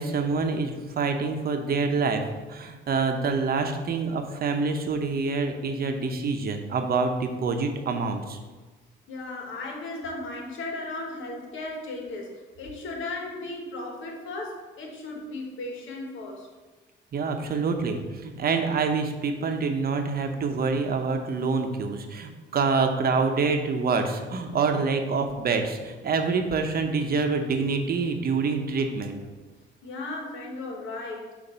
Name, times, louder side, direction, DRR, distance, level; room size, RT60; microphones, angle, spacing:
voice 1, 0.0-2.2 2.5-8.4 17.1-29.2, right 4 dB, 50° right, 5 dB, 0.8 m, -26 dB
voice 2, 9.1-16.5 29.8-31.3, left 2 dB, 80° left, 1 dB, 1.3 m, -36 dB
6.5 x 2.6 x 5.5 m, 1.3 s
cardioid pair, 90°, 20 cm